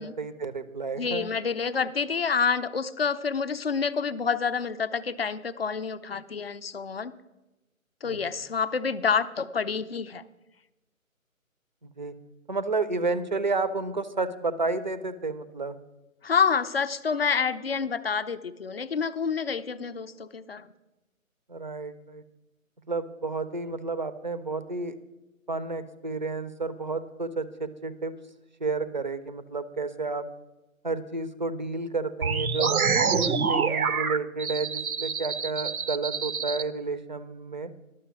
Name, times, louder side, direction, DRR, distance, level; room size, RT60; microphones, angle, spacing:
voice 1, 0.0-1.3 8.0-8.2 11.8-12.1 12.5-15.8 21.5-22.2 22.9-24.9 25.5-28.1 28.6-30.2 30.8-32.7 33.1-37.7, right 3 dB, 35° right, 12 dB, 0.5 m, -31 dB
voice 2, 1.0-7.1 8.0-10.2 16.2-20.7, left 6 dB, 45° left, 13 dB, 0.5 m, -28 dB
sound 1, 32.2-36.6, right 5 dB, 85° right, 0.8 m, -26 dB
11.5 x 6.7 x 7.1 m, 1.0 s
figure-of-eight pair, 155°, 42 cm